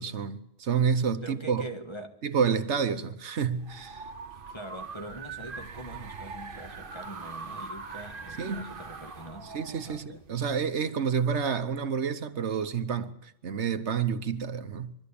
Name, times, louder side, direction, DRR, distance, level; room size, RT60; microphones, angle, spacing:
voice 1, 0.0-1.7 2.2-4.1 8.4-8.7 9.5-15.0, right 6 dB, 75° right, 1.3 m, -29 dB
voice 2, 1.2-2.2 2.7-3.1 4.3-9.6 9.8-10.2, right 1 dB, 25° left, 1.8 m, -43 dB
sound 1, 3.4-10.6, right 4 dB, 50° right, 1.4 m, -42 dB
23.0 x 13.0 x 8.5 m
omnidirectional pair, 1.2 m